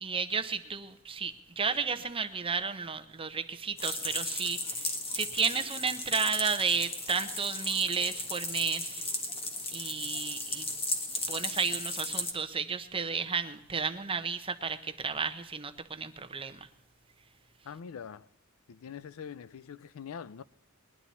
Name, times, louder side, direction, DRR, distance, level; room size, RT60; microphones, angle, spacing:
voice 1, 0.0-9.1 9.7-10.7 11.3-16.6, right 5 dB, 25° right, 0.8 m, -32 dB
sound 1, 3.8-12.3, left 2 dB, 25° left, 1.5 m, -35 dB
voice 2, 17.7-18.3 18.7-20.4, left 7 dB, 75° left, 0.4 m, -43 dB
20.5 x 11.0 x 4.2 m
head